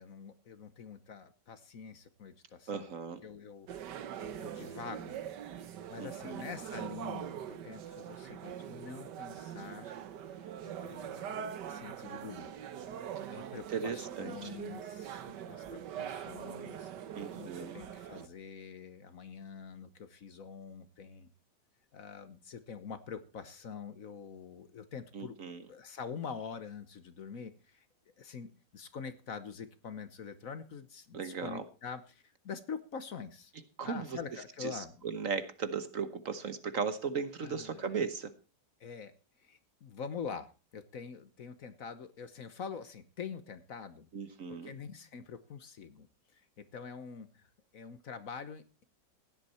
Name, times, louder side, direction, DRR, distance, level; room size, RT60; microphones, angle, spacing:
voice 1, 0.0-2.9 3.2-3.7 4.2-5.2 5.6-9.9 10.4-12.5 13.3-21.3 21.9-25.4 25.7-27.9 28.2-33.5 33.8-35.0 37.4-37.9 38.8-44.1 44.5-46.1 46.3-48.8, left 6 dB, 55° left, 12 dB, 1.3 m, -45 dB
voice 2, 2.7-3.2 6.0-6.5 13.2-13.4 13.7-14.5 17.1-17.8 25.1-25.6 31.1-31.6 33.8-34.2 34.6-38.3 44.1-44.7, right 5 dB, 50° right, 12 dB, 1.3 m, -37 dB
sound 1, 3.7-18.3, right 9 dB, 75° right, 1.6 m, -43 dB
16.0 x 11.5 x 4.3 m, 0.33 s
omnidirectional pair, 1.9 m